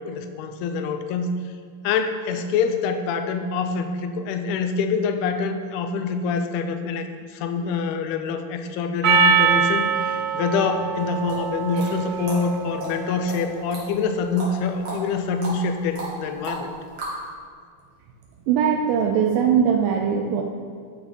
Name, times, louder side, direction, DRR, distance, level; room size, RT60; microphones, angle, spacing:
voice 1, 0.0-1.4 1.8-16.7, left 5 dB, 85° left, 8 dB, 2.6 m, -25 dB
Percussion, 9.0-13.6, right 6 dB, 65° right, 2.0 m, -23 dB
sound 1, 11.0-17.3, right 1 dB, 45° right, 3.1 m, -35 dB
voice 2, 18.5-20.4, right 7 dB, 80° right, 3 dB, 2.0 m, -20 dB
12.0 x 8.7 x 3.9 m, 2.1 s
omnidirectional pair, 4.5 m